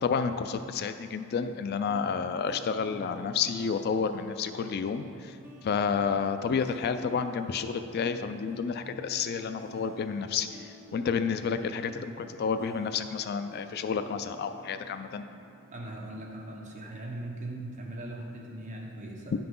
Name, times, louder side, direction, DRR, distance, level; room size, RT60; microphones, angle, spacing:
voice 1, 0.0-5.4 5.6-15.2, left 6 dB, 50° left, 10 dB, 0.3 m, -30 dB
sound 1, 1.9-16.9, equal, 10° right, 0.7 m, -49 dB
voice 2, 15.7-19.3, right 1 dB, 35° right, -2 dB, 1.2 m, -39 dB
10.5 x 5.8 x 3.7 m, 2.6 s
head